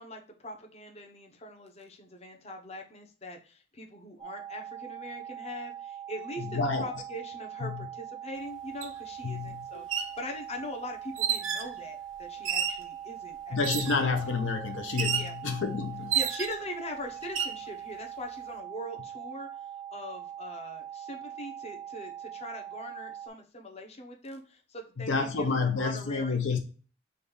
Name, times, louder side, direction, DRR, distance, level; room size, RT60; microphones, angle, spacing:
voice 1, 0.0-13.6 13.9-14.1 15.2-15.3 16.1-19.5 19.9-26.6, left 1 dB, 35° left, 0.8 m, -42 dB
sound 1, 4.2-23.3, right 10 dB, 20° right, 0.3 m, -42 dB
voice 2, 6.4-6.9 7.6-7.9 9.2-9.8 13.5-16.2 25.0-26.6, left 4 dB, 70° left, 0.6 m, -29 dB
sound 2, 8.8-8.9 9.7-10.2 11.2-11.7 12.4-12.9 13.6-14.1 15.0-15.3 16.1-16.7 17.2-17.6, right 8 dB, 85° right, 0.6 m, -30 dB
5.2 x 2.4 x 3.8 m
head